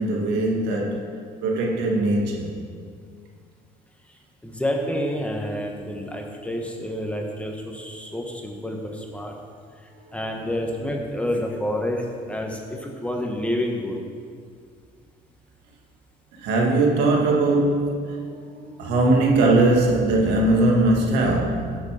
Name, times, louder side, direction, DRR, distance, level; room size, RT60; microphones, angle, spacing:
voice 1, 0.0-2.5 10.1-10.2 16.3-21.8, right 2 dB, 90° right, 2.0 m, -21 dB
voice 2, 4.4-9.3 10.1-14.0, left 1 dB, 5° left, 1.5 m, -28 dB
13.5 x 6.9 x 5.1 m
cardioid pair, 110°, 17 cm